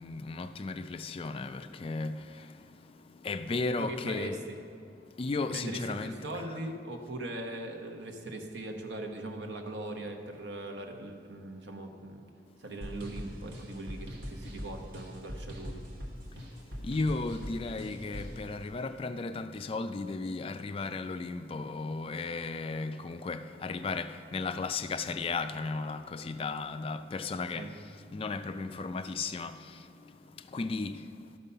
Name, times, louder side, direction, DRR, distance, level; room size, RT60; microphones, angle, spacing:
voice 1, 0.0-2.7 3.2-4.4 5.2-6.4 16.8-27.8 28.1-29.9 30.5-31.1, left 3 dB, 30° left, 0.3 m, -35 dB
voice 2, 3.8-4.6 5.5-12.2 12.6-15.8 27.5-27.7, right 2 dB, 90° right, 1.0 m, -40 dB
sound 1, 12.8-18.4, equal, 65° right, 1.5 m, -42 dB
12.5 x 5.5 x 5.5 m
head